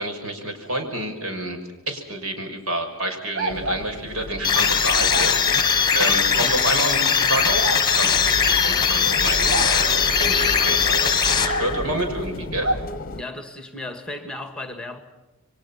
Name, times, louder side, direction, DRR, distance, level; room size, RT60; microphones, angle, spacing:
voice 1, 0.0-1.6 1.9-12.7, right 1 dB, 80° right, 5.9 m, -29 dB
sound 1, 3.3-3.9 5.1-5.3 6.6-6.7 7.6-7.8 9.5-9.7 11.5-11.9 12.6-12.8, right 2 dB, 55° right, 2.1 m, -27 dB
sound 2, 3.5-13.2, left 1 dB, 40° left, 0.9 m, -34 dB
sound 3, 4.4-12.0, left 6 dB, 20° left, 1.8 m, -20 dB
voice 2, 13.1-15.0, left 2 dB, 5° left, 2.0 m, -35 dB
29.5 x 23.5 x 5.8 m
head